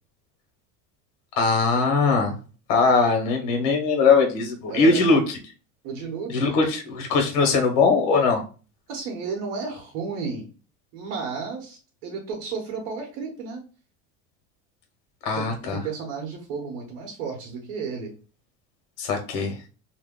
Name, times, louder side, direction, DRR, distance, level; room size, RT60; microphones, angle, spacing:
voice 1, 1.4-2.4 2.7-5.2 6.3-8.4 15.2-15.8 19.0-19.6, left 4 dB, 60° left, 3 dB, 1.2 m, -20 dB
voice 2, 4.7-5.0 5.8-6.8 8.9-10.5 10.9-13.6 15.3-18.1, right 5 dB, 70° right, 0 dB, 1.1 m, -33 dB
2.8 x 2.2 x 3.6 m, 0.35 s
supercardioid pair, 135°, 36 cm